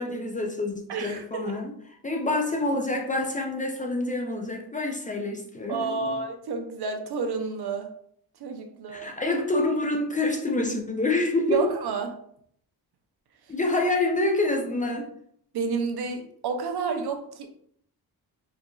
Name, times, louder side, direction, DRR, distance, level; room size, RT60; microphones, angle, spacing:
voice 1, 0.0-1.7 2.0-6.2 8.9-11.7 13.5-15.1, left 2 dB, 20° left, 2 dB, 0.3 m, -27 dB
voice 2, 0.9-1.5 5.7-7.9 8.4-9.1 11.5-12.1 15.5-17.5, right 5 dB, 80° right, 5 dB, 0.6 m, -30 dB
4.5 x 2.5 x 2.2 m, 0.66 s
wide cardioid pair, 135°, 38 cm